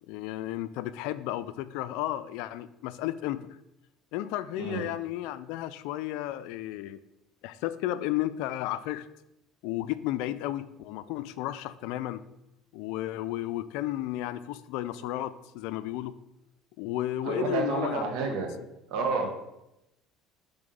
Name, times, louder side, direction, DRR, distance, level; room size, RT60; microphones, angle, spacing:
voice 1, 0.1-3.4 4.1-7.0 7.4-9.1 9.6-12.2 12.7-16.2 16.8-18.0, left 14 dB, 80° left, 14 dB, 0.3 m, -33 dB
voice 2, 4.5-4.9 17.2-18.5 18.9-19.3, right 4 dB, 70° right, 3 dB, 1.3 m, -30 dB
5.9 x 3.6 x 5.2 m, 0.88 s
supercardioid pair, 105°, 0 cm